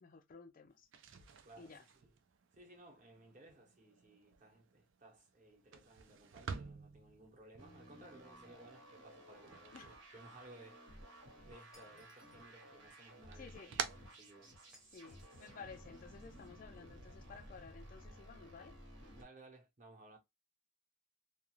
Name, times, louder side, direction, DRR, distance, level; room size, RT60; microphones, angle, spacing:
voice 1, 0.0-0.9 1.6-1.9 9.7-9.9 13.3-13.7 14.9-18.7, left 5 dB, 45° left, 0.3 m, -54 dB
sound 1, 0.8-10.8 11.1-12.0 12.3-15.0, right 6 dB, 75° right, 0.4 m, -49 dB
voice 2, 1.4-2.1 2.5-9.8 10.1-11.1 11.4-13.8 14.2-14.5 19.2-20.2, right 2 dB, 40° right, 0.8 m, -59 dB
sound 2, 7.6-19.2, right 1 dB, 90° right, 1.2 m, -56 dB
Shatter, 11.7-12.5 14.7-15.5, equal, 5° right, 0.6 m, -67 dB
2.4 x 2.3 x 3.0 m
head